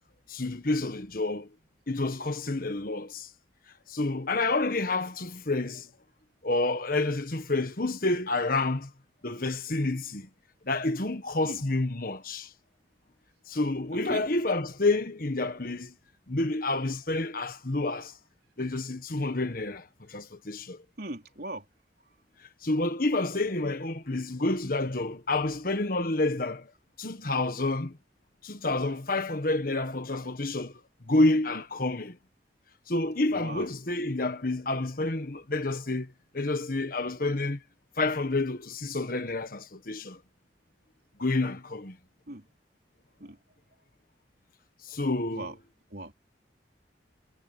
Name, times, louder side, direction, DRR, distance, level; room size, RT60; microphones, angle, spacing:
voice 1, 0.3-1.5 1.9-3.3 3.9-5.9 6.4-8.9 9.2-10.3 10.7-12.5 13.5-15.9 16.3-18.1 18.6-20.8 22.6-26.7 27.0-28.0 28.4-30.7 31.1-32.2 32.9-37.6 38.0-40.2 41.2-42.0 44.8-45.5, left 2 dB, 50° left, 1.4 m, -29 dB
voice 2, 21.0-21.7 33.3-33.7 42.3-42.5 43.2-43.4 45.3-45.6 45.9-46.1, right 2 dB, 55° right, 4.2 m, -39 dB
head